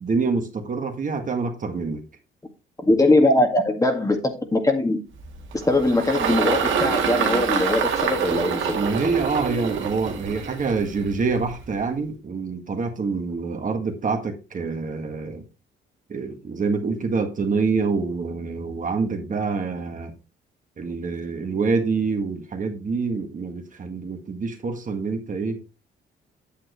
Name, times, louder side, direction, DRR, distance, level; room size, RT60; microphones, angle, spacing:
voice 1, 0.0-2.0 8.7-15.4 16.1-20.1 20.8-25.6, right 4 dB, 40° right, 1.7 m, -26 dB
voice 2, 2.9-5.0 5.5-8.7, left 2 dB, 15° left, 1.9 m, -21 dB
Engine, 5.2-11.8, right 6 dB, 75° right, 1.8 m, -26 dB
8.8 x 7.5 x 3.1 m
cardioid pair, 90°, 20 cm